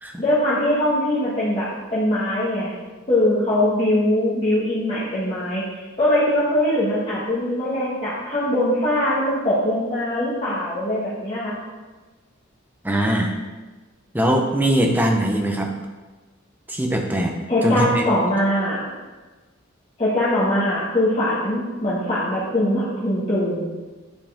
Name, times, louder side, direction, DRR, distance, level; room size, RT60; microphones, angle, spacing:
voice 1, 0.2-2.7 3.1-11.6 17.5-18.9 20.0-23.7, left 1 dB, 30° left, -11 dB, 1.7 m, -22 dB
voice 2, 12.8-13.3 14.1-15.7 16.7-17.3 17.6-18.0, right 1 dB, 10° right, 1 dB, 0.8 m, -21 dB
10.0 x 4.9 x 3.6 m, 1.3 s
head